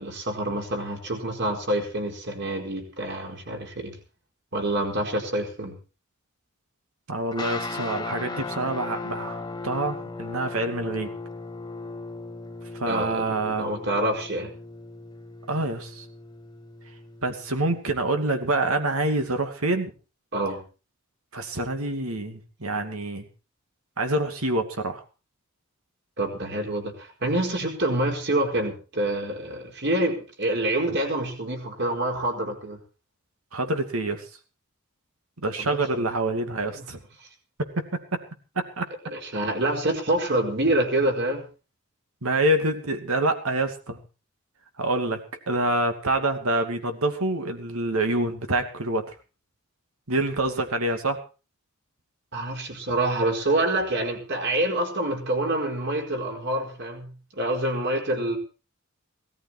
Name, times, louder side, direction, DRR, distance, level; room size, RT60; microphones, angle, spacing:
voice 1, 0.0-3.9 4.5-5.7 12.9-14.5 20.3-20.6 26.2-32.8 35.6-36.0 36.7-36.9 39.0-41.4 52.3-58.4, right 1 dB, 55° right, 2 dB, 4.6 m, -27 dB
voice 2, 7.1-11.1 12.7-13.7 15.5-16.0 17.2-19.9 21.3-23.3 24.0-25.0 33.5-34.2 35.4-37.0 37.6-37.8 38.1-38.2 38.6-38.9 42.2-44.0 44.8-49.1 50.1-51.2, right 2 dB, 80° right, 6 dB, 2.6 m, -26 dB
sound 1, 7.3-17.8, left 3 dB, 20° left, 1.4 m, -37 dB
18.0 x 13.5 x 4.6 m, 0.35 s
head